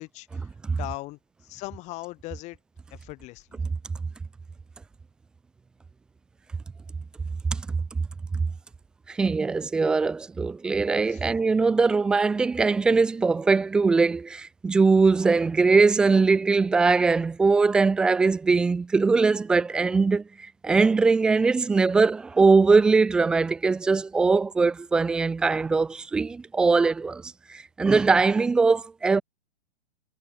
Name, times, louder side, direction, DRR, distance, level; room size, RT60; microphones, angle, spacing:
voice 1, 0.0-0.5 0.8-2.6 2.9-3.6 11.1-11.3, left 20 dB, 20° left, 4.5 m, -39 dB
voice 2, 9.1-29.2, right 4 dB, 5° right, 0.5 m, -21 dB
hypercardioid pair, 170°, 33 cm